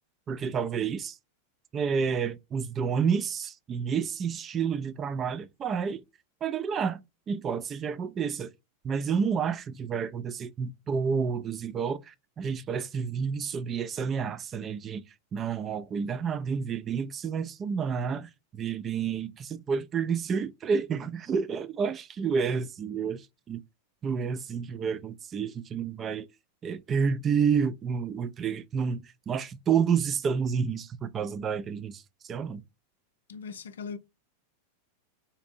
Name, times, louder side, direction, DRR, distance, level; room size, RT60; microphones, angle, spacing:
voice 1, 0.3-1.2 1.7-6.0 6.4-7.0 7.3-8.5 8.8-15.0 15.3-23.6 24.0-26.3 26.6-32.6, right 6 dB, 25° right, 0.3 m, -30 dB
voice 2, 33.3-34.0, left 6 dB, 65° left, 0.4 m, -39 dB
4.0 x 2.5 x 2.5 m
figure-of-eight pair, 90°, 0 cm